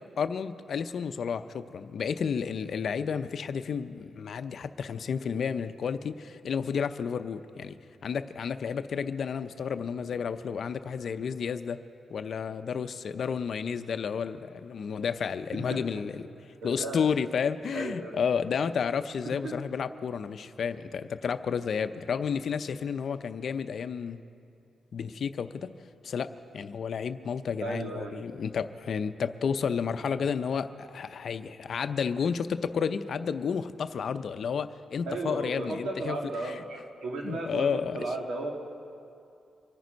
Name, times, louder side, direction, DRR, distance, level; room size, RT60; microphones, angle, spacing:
voice 1, 0.2-7.8 8.0-11.8 12.1-16.3 16.6-24.2 24.9-25.7 26.0-36.2 36.4-36.6 37.2-38.0, left 6 dB, 65° left, 11 dB, 0.6 m, -31 dB
voice 2, 15.5-16.0 16.8-17.0 17.7-18.2 19.2-19.5 27.6-28.2 35.1-38.5, right 2 dB, 80° right, 1 dB, 2.0 m, -35 dB
24.5 x 9.6 x 5.2 m, 2.5 s
cardioid pair, 90°, 0 cm